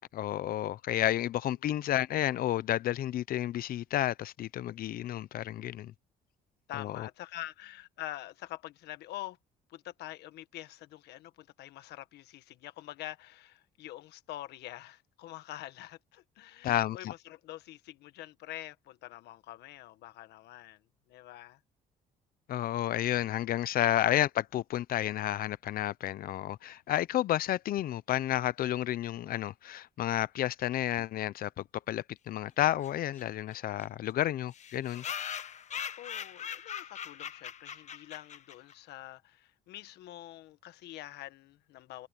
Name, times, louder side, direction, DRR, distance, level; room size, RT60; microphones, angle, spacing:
voice 1, 0.0-5.9 6.8-7.1 16.6-17.1 22.5-35.0, left 13 dB, 60° left, 0.7 m, -31 dB
voice 2, 6.7-9.4 9.7-20.8 21.1-21.6 36.0-42.1, left 15 dB, 80° left, 1.4 m, -45 dB
sound 1, 32.8-32.9 33.2-33.3 33.5-33.6 33.8-33.9 34.5-38.7, left 8 dB, 45° left, 1.1 m, -40 dB
cardioid pair, 110°, 17 cm